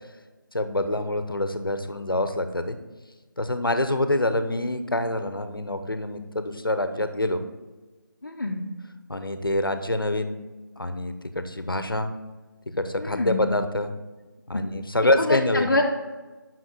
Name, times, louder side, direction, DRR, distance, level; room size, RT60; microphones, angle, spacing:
voice 1, 0.5-2.8 3.4-7.4 9.1-10.4 10.8-12.1 12.7-13.9 14.5-15.7, left 1 dB, 90° left, 9 dB, 0.9 m, -26 dB
voice 2, 8.2-8.6 13.0-13.4 14.5-14.6 15.2-15.8, left 2 dB, 55° left, -3 dB, 0.8 m, -26 dB
7.4 x 5.9 x 4.6 m, 1.3 s
figure-of-eight pair, 165°, 11 cm